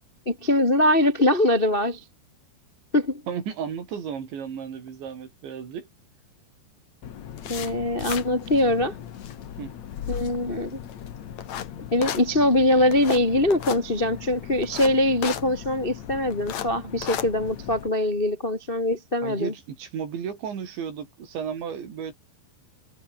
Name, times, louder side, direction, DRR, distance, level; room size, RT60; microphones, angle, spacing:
voice 1, 0.2-2.0 2.9-3.2 7.5-8.9 10.1-10.8 11.9-19.5, left 1 dB, 25° left, 1.2 m, -22 dB
voice 2, 3.3-5.9 9.6-9.7 19.2-22.1, right 7 dB, 70° right, 6.2 m, -34 dB
sound 1, 7.0-17.9, left 9 dB, 55° left, 2.0 m, -36 dB
omnidirectional pair, 5.5 m